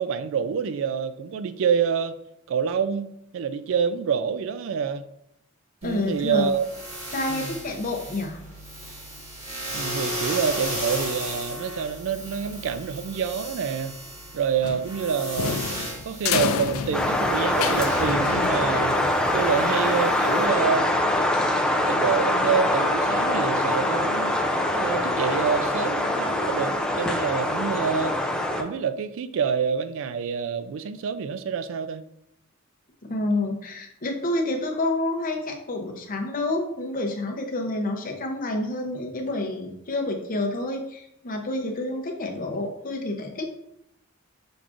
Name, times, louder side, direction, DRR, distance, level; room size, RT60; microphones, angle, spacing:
voice 1, 0.0-2.1 2.5-3.1 3.3-5.0 5.8-6.7 7.3-7.6 9.7-14.0 14.3-15.6 16.1-19.0 19.3-20.9 21.9-24.4 24.8-28.3 28.6-32.0, right 6 dB, 70° right, 12 dB, 0.3 m, -27 dB
voice 2, 5.8-6.5 7.1-8.4 33.1-43.5, left 2 dB, 40° left, 3 dB, 0.7 m, -28 dB
sound 1, 5.8-20.4, equal, 30° right, 1.8 m, -36 dB
sound 2, 14.6-19.1, left 6 dB, 80° left, 0.4 m, -29 dB
sound 3, 16.9-28.6, left 1 dB, 5° left, 0.4 m, -24 dB
5.9 x 3.6 x 2.5 m, 0.77 s
head